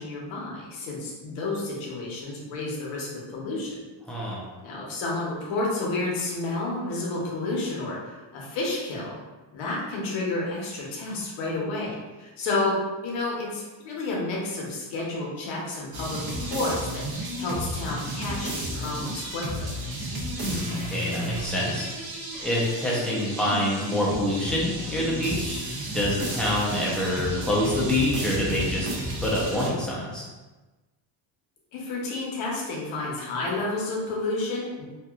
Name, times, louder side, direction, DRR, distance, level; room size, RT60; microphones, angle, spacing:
voice 1, 0.0-3.8 4.6-9.2 9.5-12.8 13.0-19.8 31.7-34.9, left 2 dB, 80° left, -3 dB, 1.0 m, -30 dB
voice 2, 4.1-4.5 20.4-21.9 22.4-25.7 25.9-28.9 29.2-30.3, left 1 dB, ahead, -6 dB, 0.5 m, -26 dB
sound 1, 15.9-29.7, right 1 dB, 50° right, 0.8 m, -33 dB
2.9 x 2.4 x 2.4 m, 1.2 s
cardioid pair, 135°, 47 cm